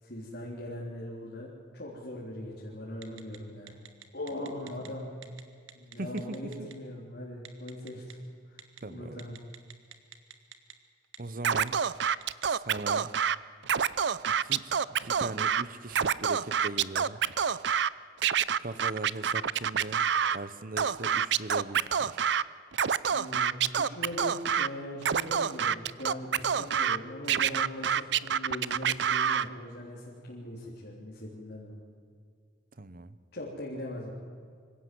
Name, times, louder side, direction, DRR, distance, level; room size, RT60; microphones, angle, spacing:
voice 1, 0.0-3.8 4.1-5.1 5.7-8.2 8.5-8.6 8.9-9.4 23.1-31.8 33.3-34.1, left 1 dB, 55° left, -5 dB, 3.6 m, -40 dB
Telephone, 3.0-3.4 3.7-4.9 5.2-5.4 5.7-6.7 7.4-8.1 8.6-8.8 9.2-10.7 11.0-11.2 11.5-12.4, right 10 dB, 90° right, 1.7 m, -47 dB
voice 2, 6.0-6.7 8.8-9.3 11.2-11.8 12.5-13.1 14.4-14.7 15.0-17.2 18.6-20.1 20.3-22.2 32.8-33.2, right 2 dB, 45° right, 15 dB, 0.9 m, -39 dB
Scratching (performance technique), 11.4-13.3 13.6-15.6 15.9-17.9 18.2-20.4 20.8-22.4 22.7-24.7 25.0-27.0 27.3-29.5, right 8 dB, 60° right, 0.5 m, -27 dB
25.5 x 16.5 x 7.7 m, 2.1 s
head